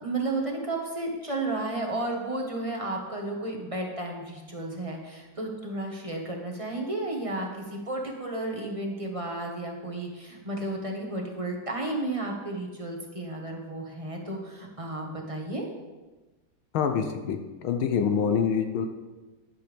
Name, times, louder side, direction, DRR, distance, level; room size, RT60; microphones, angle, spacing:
voice 1, 0.0-15.6, right 2 dB, 20° right, 0 dB, 1.3 m, -33 dB
voice 2, 16.7-18.9, left 7 dB, 85° left, 6 dB, 1.7 m, -26 dB
11.5 x 10.5 x 3.5 m, 1.2 s
omnidirectional pair, 2.2 m